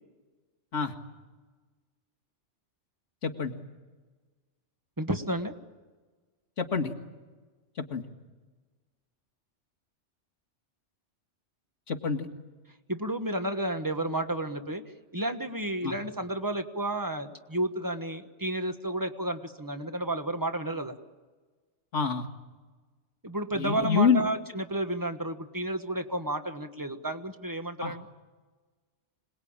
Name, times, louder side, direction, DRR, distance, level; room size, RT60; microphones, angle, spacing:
voice 1, 3.2-3.5 6.6-6.9 7.8-8.0 11.9-12.3 15.8-15.9 21.9-22.3 23.5-24.2 27.8-28.0, left 6 dB, 80° left, 2 dB, 2.1 m, -27 dB
voice 2, 5.0-5.5 12.9-14.8 15.1-20.9 23.2-28.0, right 1 dB, 15° right, 7 dB, 1.3 m, -31 dB
26.5 x 20.0 x 8.8 m, 1.3 s
omnidirectional pair, 1.2 m